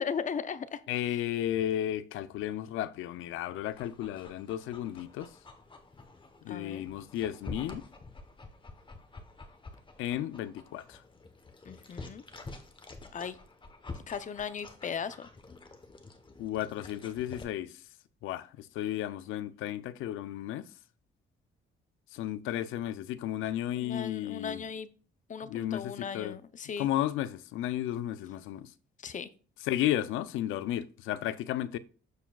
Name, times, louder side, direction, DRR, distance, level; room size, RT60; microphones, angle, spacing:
voice 1, 0.0-0.8 1.1-1.2 6.5-6.9 11.6-12.2 13.1-13.4 14.1-15.3 23.7-24.9 25.3-26.9 29.0-29.3, left 7 dB, 40° left, 0.5 m, -37 dB
voice 2, 0.9-5.3 6.4-7.8 10.0-11.0 16.4-17.8 18.2-20.7 22.1-24.6 25.4-26.4 26.8-28.7 29.6-31.8, left 12 dB, 90° left, 0.5 m, -33 dB
Dog, 3.6-17.4, left 3 dB, 25° left, 1.0 m, -48 dB
13.0 x 4.6 x 2.3 m
cardioid pair, 90°, 20 cm